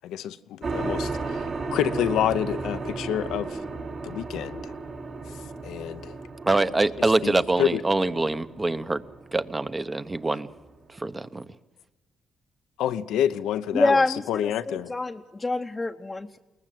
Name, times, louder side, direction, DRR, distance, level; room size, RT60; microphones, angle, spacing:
voice 1, 0.0-1.4 1.7-3.6 4.0-4.7 5.6-6.2 7.2-7.8 12.8-14.9, left 10 dB, 85° left, 0.7 m, -28 dB
sound 1, 0.6-10.7, right 3 dB, 60° right, 4.1 m, -34 dB
voice 2, 6.4-9.0 9.3-10.5 11.0-11.5, right 2 dB, 25° right, 1.0 m, -24 dB
voice 3, 13.7-16.4, left 3 dB, 25° left, 0.8 m, -26 dB
22.0 x 19.5 x 7.7 m
supercardioid pair, 65°, 0 cm